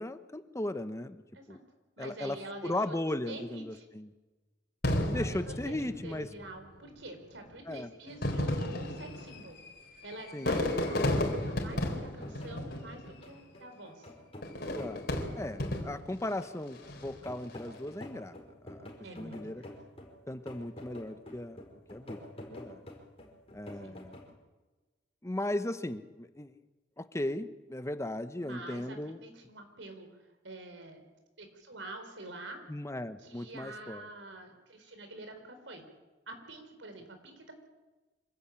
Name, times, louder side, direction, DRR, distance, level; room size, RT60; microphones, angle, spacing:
voice 1, 0.0-1.2 1.5-1.6 2.0-4.1 5.1-6.3 7.7-7.9 10.3-10.9 14.7-15.1 15.4-18.4 18.6-18.9 19.2-19.6 20.3-21.6 21.9-22.8 23.5-24.2 25.2-26.6 27.0-29.2 32.7-34.1, left 1 dB, 15° left, 11 dB, 0.9 m, -37 dB
voice 2, 2.0-3.0 3.3-3.8 5.1-9.6 10.0-14.1 19.0-19.7 23.8-23.9 28.4-30.1 30.4-31.0 31.4-32.6 33.2-35.8 36.3-37.5, right 2 dB, 85° right, 6 dB, 4.5 m, -47 dB
Fireworks, 4.8-6.5 7.3-7.4 8.1-13.4 14.4-16.2 16.8-17.2, left 1 dB, 60° left, 3.9 m, -33 dB
sound 1, 11.7-24.3, left 1 dB, 35° left, 4.8 m, -49 dB
26.0 x 16.0 x 8.8 m, 1.2 s
head